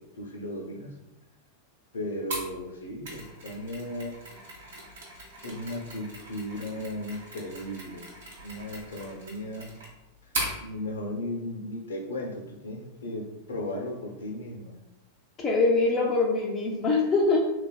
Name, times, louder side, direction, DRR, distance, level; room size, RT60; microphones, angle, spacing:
voice 1, 0.2-0.9 1.9-4.1 5.4-8.0 8.4-9.7 10.6-14.8, left 1 dB, 65° left, 0 dB, 0.6 m, -36 dB
Mechanisms, 2.3-10.6, right 1 dB, 60° right, 0.8 m, -39 dB
voice 2, 15.4-17.4, left 3 dB, 25° left, -2 dB, 0.4 m, -23 dB
3.2 x 2.3 x 2.2 m, 0.95 s
figure-of-eight pair, 90°, 0 cm